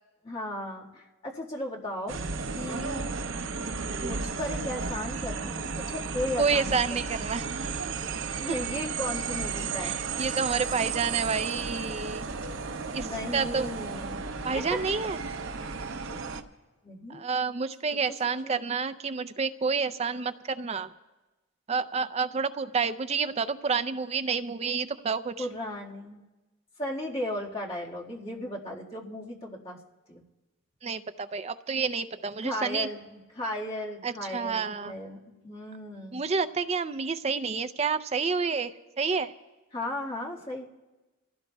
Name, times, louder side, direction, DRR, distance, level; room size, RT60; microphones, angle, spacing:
voice 1, 0.2-2.2 2.5-3.1 4.0-7.2 8.4-10.0 12.9-14.2 14.5-14.8 15.6-15.9 16.8-17.3 18.4-18.6 25.4-26.2 26.8-29.8 30.1-30.2 32.4-35.2 35.4-36.2 39.7-40.6, left 1 dB, 30° left, -3 dB, 1.7 m, -36 dB
sound 1, 2.1-16.4, right 5 dB, 70° right, 0.7 m, -34 dB
voice 2, 6.4-7.4 8.5-8.6 9.8-12.3 12.9-13.7 14.4-15.2 17.1-20.9 21.7-25.5 30.8-32.9 34.0-34.9 36.1-38.7 39.0-39.3, right 5 dB, 30° right, 11 dB, 0.4 m, -29 dB
sound 2, 9.0-16.4, left 1 dB, 80° left, 1.6 m, -53 dB
28.0 x 16.0 x 2.3 m, 1.1 s
head